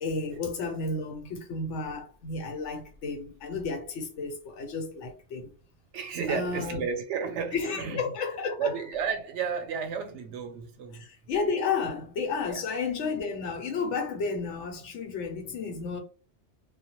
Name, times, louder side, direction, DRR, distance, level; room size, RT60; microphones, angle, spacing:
voice 1, 0.0-5.5 6.3-6.8 7.5-8.7 10.9-16.0, left 4 dB, 90° left, 1.0 m, -32 dB
voice 2, 5.9-8.0 8.6-11.0 12.5-12.6, right 6 dB, 90° right, 0.9 m, -32 dB
2.2 x 2.1 x 2.9 m
omnidirectional pair, 1.2 m